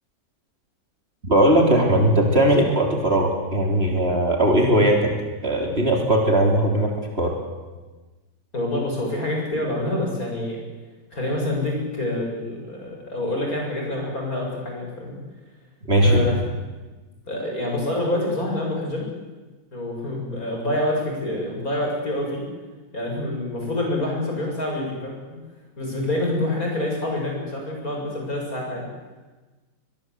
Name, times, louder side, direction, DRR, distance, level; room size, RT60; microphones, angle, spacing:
voice 1, 1.2-5.1 5.4-7.3 15.9-16.2, right 1 dB, 35° right, 1 dB, 3.7 m, -19 dB
voice 2, 8.5-10.6 11.1-15.2 16.0-16.4 17.3-19.0 19.7-22.4 22.9-25.4 25.8-28.9, left 1 dB, 50° left, -1 dB, 7.6 m, -27 dB
23.5 x 22.0 x 8.1 m, 1.3 s
omnidirectional pair, 2.0 m